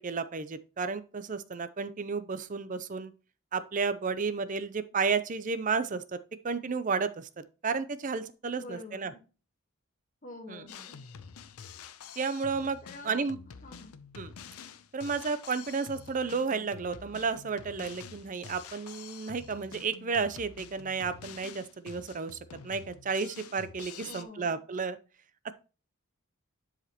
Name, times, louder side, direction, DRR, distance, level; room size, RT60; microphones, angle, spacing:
voice 1, 0.0-3.1 3.5-6.2 6.4-9.1 10.5-10.6 12.2-12.8 13.0-13.4 14.2-14.3 14.9-22.4 22.6-25.0 25.4-25.5, right 5 dB, 35° right, 0.5 m, -32 dB
voice 2, 8.5-9.2 10.2-11.0 12.8-13.2 13.6-14.0 24.0-24.6, left 2 dB, 40° left, 1.2 m, -47 dB
Drum kit, 10.7-24.2, left 6 dB, 90° left, 0.6 m, -48 dB
11.0 x 4.9 x 2.9 m
head